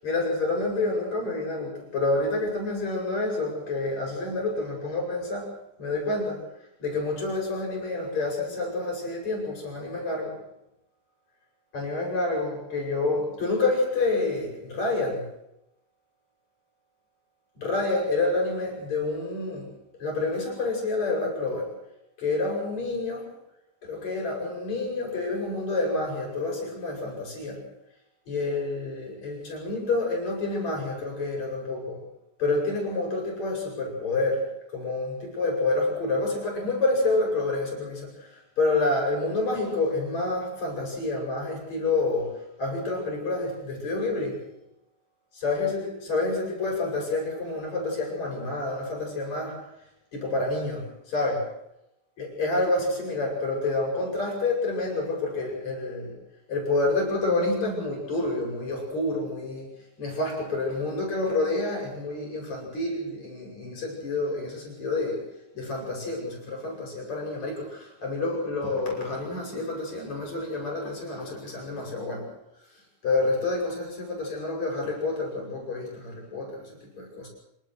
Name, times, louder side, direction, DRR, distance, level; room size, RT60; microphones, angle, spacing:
voice 1, 0.0-6.4 6.8-10.4 11.7-15.3 17.6-19.7 20.0-21.8 22.2-23.3 23.8-27.6 28.3-32.0 32.4-44.4 45.3-49.6 50.1-51.5 52.2-56.2 56.5-59.7 60.0-65.3 65.5-72.3 73.0-76.7 77.0-77.3, left 2 dB, 35° left, 0 dB, 9.2 m, -28 dB
27.0 x 19.0 x 6.6 m, 0.82 s
omnidirectional pair, 5.4 m